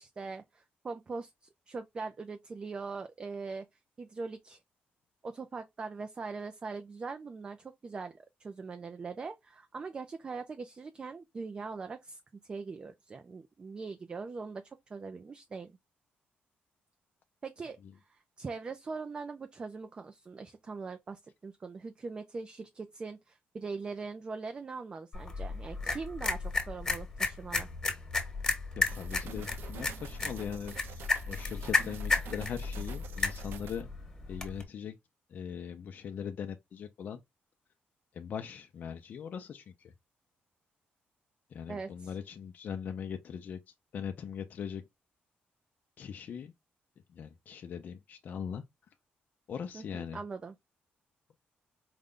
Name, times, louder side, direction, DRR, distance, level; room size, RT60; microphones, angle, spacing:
voice 1, 0.0-1.3 1.7-3.7 4.0-4.6 5.2-15.8 17.4-17.8 18.1-27.7 41.7-42.2 49.7-50.6, right 4 dB, 25° right, 0.4 m, -41 dB
sound 1, 25.1-34.6, left 3 dB, 20° left, 1.3 m, -33 dB
sound 2, 28.8-33.8, right 8 dB, 80° right, 0.7 m, -48 dB
voice 2, 28.9-31.0 31.3-33.9 34.3-34.9 35.3-37.2 38.1-39.9 41.5-43.6 43.9-44.8 46.0-46.5 47.2-48.6 49.5-50.2, left 7 dB, 50° left, 0.5 m, -40 dB
5.0 x 2.2 x 3.6 m
cardioid pair, 160°, 4 cm